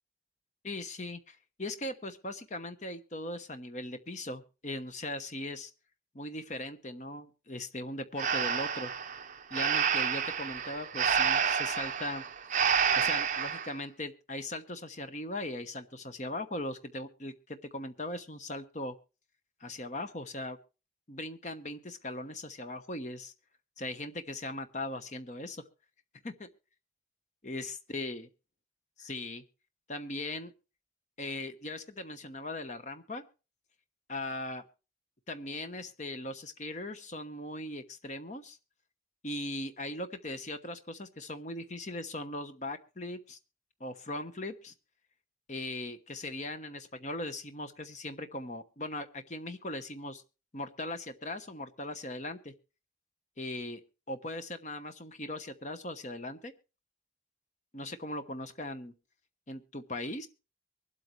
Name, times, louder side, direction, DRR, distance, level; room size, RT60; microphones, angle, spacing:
voice 1, 0.6-5.7 6.1-8.9 9.5-12.2 12.9-18.9 19.6-20.6 21.1-23.3 23.8-25.6 26.2-26.5 27.4-28.3 29.0-29.4 29.9-30.5 31.2-33.2 34.1-34.6 35.3-38.6 39.2-43.4 43.8-44.7 45.5-50.2 50.5-52.5 53.4-53.8 54.1-56.5 57.7-58.9 59.5-60.3, left 1 dB, 40° left, 9 dB, 1.0 m, -39 dB
Breathing, 8.2-13.7, right 7 dB, 40° right, 0.7 m, -29 dB
24.0 x 8.2 x 3.1 m, 0.32 s
head